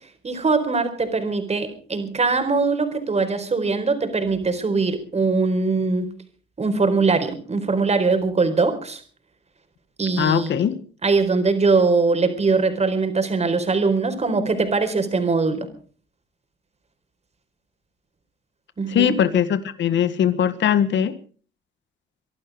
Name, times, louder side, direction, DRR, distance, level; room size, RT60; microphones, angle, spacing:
voice 1, 0.2-6.1 6.6-9.0 10.0-10.6 11.0-15.7 18.8-19.1, right 4 dB, 35° right, 7 dB, 4.3 m, -21 dB
voice 2, 10.2-10.8 18.9-21.1, left 9 dB, 70° left, 13 dB, 1.7 m, -20 dB
24.5 x 12.0 x 4.9 m, 0.43 s
cardioid pair, 90°, 20 cm